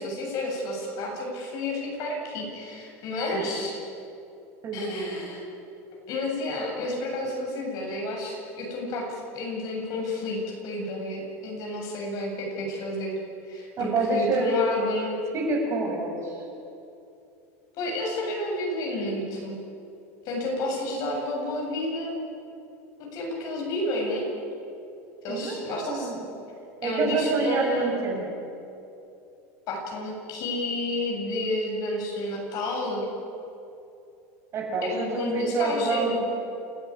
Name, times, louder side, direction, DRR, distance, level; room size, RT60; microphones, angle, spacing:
voice 1, 0.0-3.8 4.7-5.4 6.1-13.2 13.4-15.1 17.8-19.6 20.2-22.2 23.1-24.3 25.2-26.1 26.8-28.0 29.7-33.1 34.8-36.2, left 1 dB, 50° left, 0 dB, 7.9 m, -30 dB
voice 2, 4.6-5.2 13.8-14.6 15.3-16.3 25.3-26.2 26.8-28.2 34.5-36.2, right 3 dB, 35° right, 0 dB, 6.5 m, -27 dB
29.5 x 13.5 x 9.9 m, 2.7 s
supercardioid pair, 130°, 8 cm